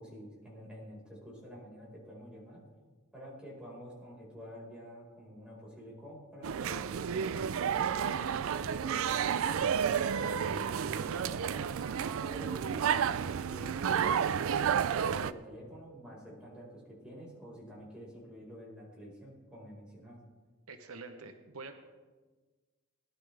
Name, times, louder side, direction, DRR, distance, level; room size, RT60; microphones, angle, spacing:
voice 1, 0.0-2.6 3.1-7.3 7.7-11.6 12.2-14.7 15.2-20.2, equal, 5° right, -5 dB, 4.7 m, -49 dB
sound 1, 6.4-15.3, right 7 dB, 65° right, 0.4 m, -31 dB
voice 2, 20.7-21.8, right 3 dB, 85° right, 7 dB, 1.0 m, -46 dB
19.5 x 11.5 x 3.4 m, 1.3 s
head